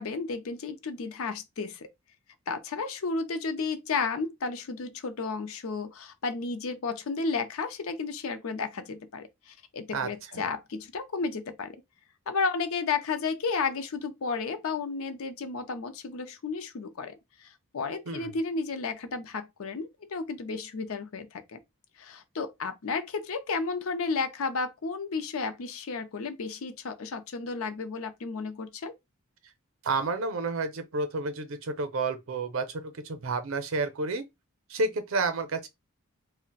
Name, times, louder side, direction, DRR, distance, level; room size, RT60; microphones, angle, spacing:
voice 1, 0.0-1.9 2.5-11.8 12.3-17.2 17.4-21.6 22.0-28.9, left 4 dB, 75° left, 0.5 m, -33 dB
voice 2, 9.9-10.4 18.1-18.3 29.8-34.2 34.7-35.7, right 3 dB, 65° right, 0.5 m, -30 dB
2.4 x 2.1 x 3.8 m
head